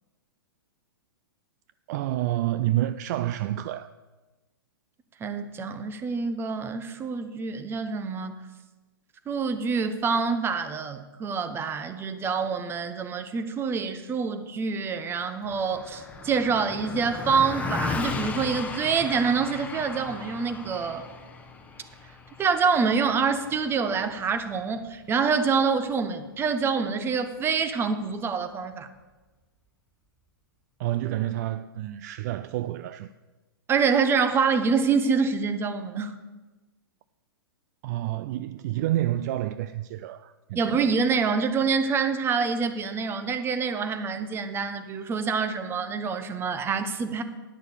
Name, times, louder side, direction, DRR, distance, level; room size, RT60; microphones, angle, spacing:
voice 1, 1.9-3.9 30.8-33.1 37.8-40.7, right 14 dB, 45° right, 0.4 m, -29 dB
voice 2, 5.2-8.4 9.3-21.1 22.4-28.9 33.7-36.1 40.5-47.2, right 5 dB, 20° right, 0.9 m, -26 dB
Car passing by, 15.4-25.0, left 4 dB, 10° left, 1.0 m, -36 dB
10.5 x 6.4 x 7.0 m
hypercardioid pair, 125°, 12 cm